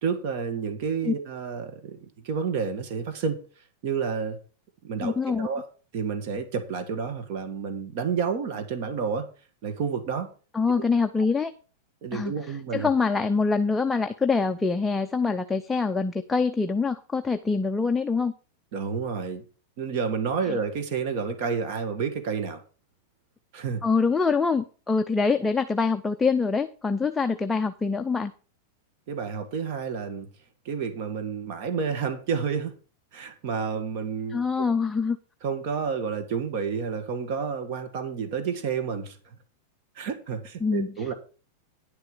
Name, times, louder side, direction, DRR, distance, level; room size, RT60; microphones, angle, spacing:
voice 1, 0.0-3.4 3.8-4.4 4.8-5.7 5.9-9.3 9.6-10.3 12.0-12.9 18.7-19.4 19.8-22.6 23.5-23.8 29.1-30.3 30.6-32.7 33.1-34.6 35.4-39.3 39.9-41.1, right 6 dB, 45° right, 8 dB, 1.7 m, -30 dB
voice 2, 5.0-5.5 10.5-11.5 12.1-18.3 20.5-20.6 23.8-28.3 34.3-35.2 40.6-40.9, left 4 dB, 5° left, 6 dB, 0.5 m, -25 dB
10.5 x 6.8 x 5.0 m, 0.36 s
supercardioid pair, 160°, 0 cm